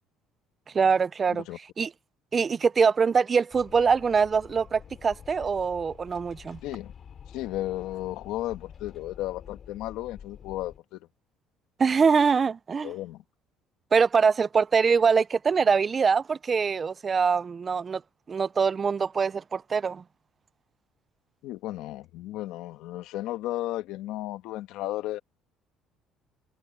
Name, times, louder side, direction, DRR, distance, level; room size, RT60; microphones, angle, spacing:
voice 1, 0.7-1.4 1.8-1.9 2.3-6.6 11.8-12.9 13.9-18.0 18.3-20.0, right 5 dB, 25° right, 0.4 m, -23 dB
Wind, 3.5-10.8, left 8 dB, 40° left, 2.8 m, -48 dB
voice 2, 7.3-11.0 12.8-13.2 21.4-25.2, left 15 dB, 80° left, 1.5 m, -34 dB
cardioid pair, 140°, 0 cm